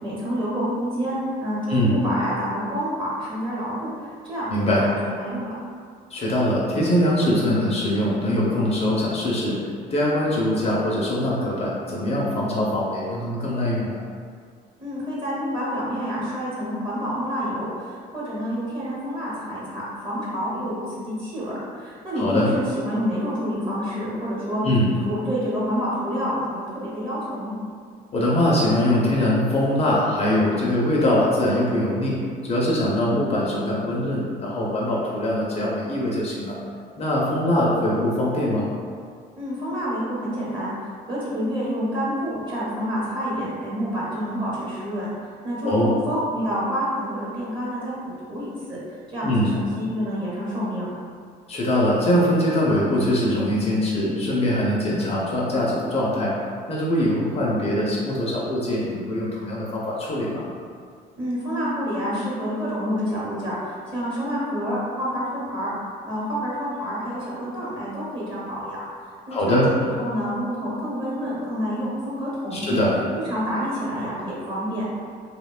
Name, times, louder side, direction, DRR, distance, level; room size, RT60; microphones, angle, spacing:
voice 1, 0.0-5.5 14.8-24.6 25.0-27.5 39.4-48.8 49.1-50.9 61.2-65.7 66.0-68.9 69.3-72.8 73.1-74.8, equal, 30° right, -7 dB, 1.0 m, -28 dB
voice 2, 4.5-4.9 6.1-9.6 9.9-14.0 22.2-22.5 24.6-24.9 28.1-36.6 37.0-38.7 45.6-45.9 49.2-49.5 51.5-56.3 56.7-60.5 69.3-69.7 72.5-72.9, left 1 dB, 35° left, -5 dB, 0.5 m, -22 dB
2.8 x 2.1 x 2.3 m, 2.1 s
cardioid pair, 110°, 17 cm